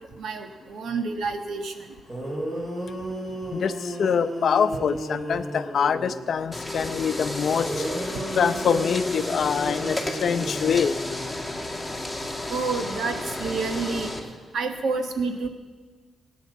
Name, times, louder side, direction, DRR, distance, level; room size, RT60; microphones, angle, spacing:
voice 1, 0.2-1.9 12.5-14.1 14.5-15.5, right 4 dB, 70° right, 6 dB, 1.5 m, -29 dB
sound 1, 1.8-1.9 2.1-6.2 7.5-11.5, right 1 dB, 25° right, 4.3 m, -33 dB
voice 2, 3.5-7.9 8.3-11.0, left 7 dB, 60° left, 11 dB, 0.7 m, -24 dB
sound 2, 6.5-14.2, left 1 dB, 5° left, 1.9 m, -32 dB
18.5 x 9.3 x 7.2 m, 1.4 s
cardioid pair, 130°, 0 cm